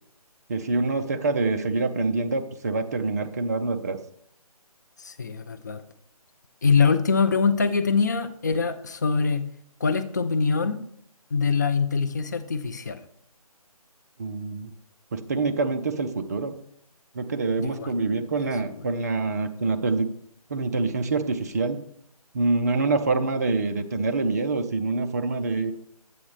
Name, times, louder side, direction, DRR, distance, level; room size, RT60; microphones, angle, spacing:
voice 1, 0.5-4.0 14.2-14.7 15.1-16.5 17.1-20.1 20.5-21.8 22.3-25.7, right 3 dB, 25° right, 7 dB, 0.5 m, -26 dB
voice 2, 5.0-5.8 6.6-9.5 9.8-10.8 11.3-13.0 17.6-17.9 18.7-18.8, left 5 dB, 30° left, 9 dB, 0.4 m, -24 dB
8.6 x 7.1 x 3.3 m, 0.69 s
figure-of-eight pair, 155°, 20 cm